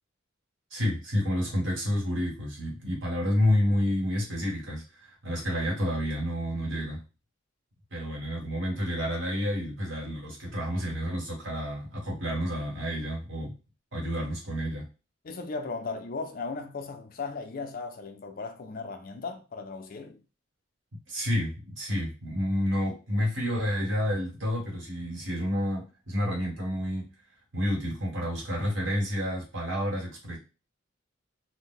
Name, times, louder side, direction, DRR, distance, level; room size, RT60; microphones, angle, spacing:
voice 1, 0.7-7.0 7.9-13.5 13.9-14.9 20.9-27.1 27.5-30.4, equal, 75° right, 1.6 m, -29 dB
voice 2, 15.2-20.2, left 4 dB, 45° left, 0.4 m, -37 dB
2.6 x 2.1 x 3.7 m
head